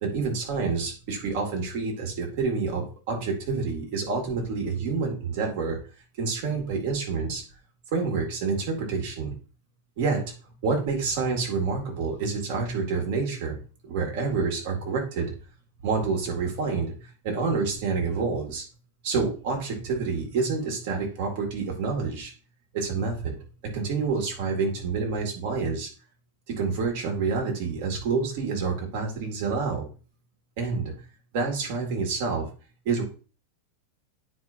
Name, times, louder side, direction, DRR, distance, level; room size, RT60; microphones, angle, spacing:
voice 1, 0.0-5.8 6.2-7.4 7.9-9.3 10.0-10.3 10.6-13.6 13.9-15.3 15.8-16.9 17.2-18.6 19.0-22.3 22.7-23.3 23.6-25.9 26.5-29.9 30.6-31.0 31.3-32.5 32.9-33.0, right 4 dB, 50° right, 1 dB, 2.3 m, -28 dB
9.5 x 4.9 x 2.7 m, 0.35 s
figure-of-eight pair, 90°, 0 cm